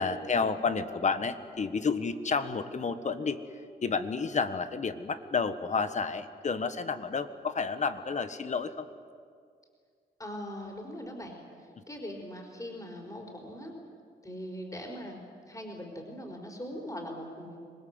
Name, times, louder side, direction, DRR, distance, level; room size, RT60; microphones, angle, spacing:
voice 1, 0.0-3.4 3.8-8.9, left 5 dB, 40° left, 11 dB, 1.4 m, -30 dB
voice 2, 10.2-11.4 11.9-13.7 14.2-15.2 15.5-17.7, equal, 20° left, 1 dB, 4.7 m, -41 dB
25.5 x 20.0 x 8.0 m, 2.2 s
cardioid pair, 90°, 18 cm